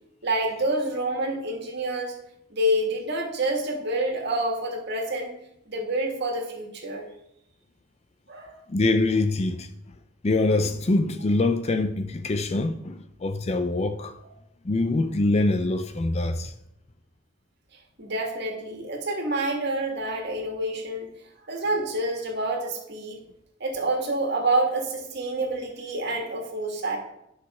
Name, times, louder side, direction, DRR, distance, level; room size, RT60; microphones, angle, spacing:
voice 1, 0.2-2.1 2.5-5.3 5.7-7.0 8.3-8.5 18.0-21.1 21.5-23.2 23.6-27.0, right 1 dB, 50° right, 1.9 m, -27 dB
voice 2, 8.7-9.7 10.2-14.1 14.6-16.5, left 2 dB, 30° left, 0.4 m, -24 dB
10.5 x 6.3 x 4.3 m
head